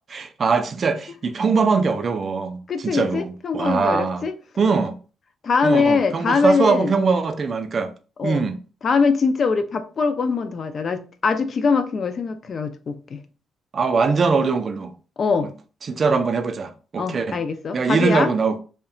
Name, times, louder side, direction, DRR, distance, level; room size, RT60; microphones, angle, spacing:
voice 1, 0.1-4.3 4.6-5.0 5.6-7.9 8.2-8.6 13.7-14.9 15.4-15.5 15.8-17.4 17.7-18.6, right 4 dB, 45° right, 0.4 m, -22 dB
voice 2, 2.7-4.3 5.4-6.9 8.2-8.4 8.8-13.2 15.2-15.5 17.0-18.3, left 5 dB, 50° left, 0.3 m, -22 dB
2.7 x 2.1 x 2.5 m
cardioid pair, 90°, 0 cm